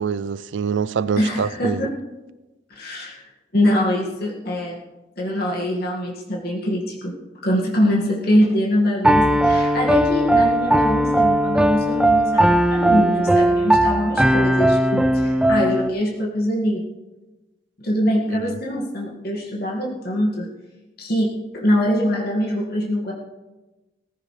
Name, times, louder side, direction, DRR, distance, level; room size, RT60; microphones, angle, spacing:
voice 1, 0.0-1.9 18.3-18.6, right 6 dB, 70° right, 0.4 m, -25 dB
voice 2, 1.2-1.9 2.7-3.2 3.5-4.8 5.2-7.2 7.4-16.8 17.8-20.5 21.0-23.1, equal, 55° left, 2.1 m, -23 dB
Piano, 9.0-15.9, right 1 dB, 5° right, 0.4 m, -18 dB
18.5 x 15.0 x 3.3 m
head